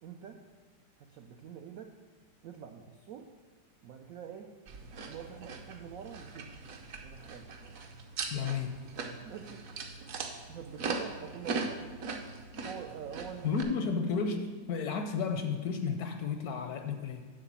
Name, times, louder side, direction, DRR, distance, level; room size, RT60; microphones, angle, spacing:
voice 1, 0.0-0.5 1.0-2.0 2.4-3.4 3.8-4.6 5.1-6.7 7.0-7.5 9.2-9.7 10.0-11.9 12.6-13.9, right 8 dB, 80° right, 5 dB, 0.7 m, -46 dB
sound 1, 4.7-13.6, right 4 dB, 60° right, 1.0 m, -40 dB
voice 2, 8.3-8.9 13.4-17.3, left 5 dB, 70° left, 6 dB, 0.9 m, -32 dB
9.9 x 3.8 x 7.3 m, 1.4 s
omnidirectional pair, 2.0 m